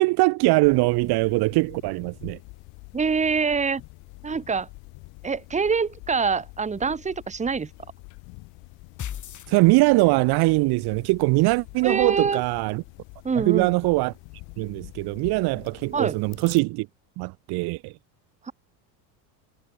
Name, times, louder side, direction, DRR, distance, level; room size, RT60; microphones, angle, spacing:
voice 1, 0.0-2.4 9.5-12.8 13.4-14.1 14.6-16.9 17.2-17.9, right 24 dB, 50° right, 0.9 m, -22 dB
sound 1, 0.6-16.6, left 28 dB, 65° left, 7.2 m, -46 dB
voice 2, 2.9-3.8 4.2-4.7 5.2-7.7 11.8-12.4 13.2-13.7 15.9-16.2 18.5-18.6, right 5 dB, 15° right, 1.4 m, -25 dB
sound 2, 9.0-10.3, left 10 dB, 35° left, 5.0 m, -36 dB
hypercardioid pair, 95°, 49 cm